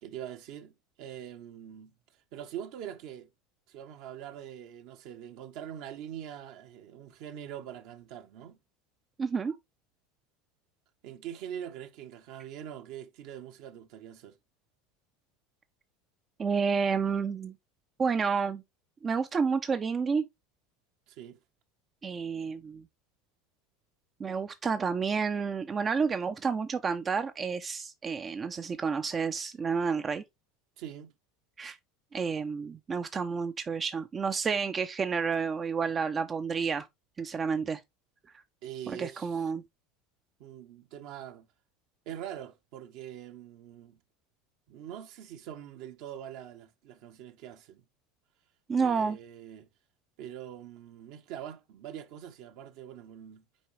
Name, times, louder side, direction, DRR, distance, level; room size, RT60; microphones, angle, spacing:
voice 1, 0.0-1.9 2.3-3.3 3.7-8.6 11.0-14.4 21.1-21.4 30.8-31.1 38.6-39.5 40.4-41.5 42.0-44.0 44.7-47.8 48.8-49.7 50.2-53.4, right 10 dB, 60° right, 1.2 m, -43 dB
voice 2, 9.2-9.6 16.4-17.5 18.0-18.6 19.0-20.2 22.0-22.8 24.2-30.2 31.6-31.8 32.1-36.9 37.2-37.8 38.9-39.6 48.7-49.2, right 5 dB, 30° right, 0.6 m, -30 dB
7.9 x 4.7 x 3.2 m
hypercardioid pair, 75°, 0 cm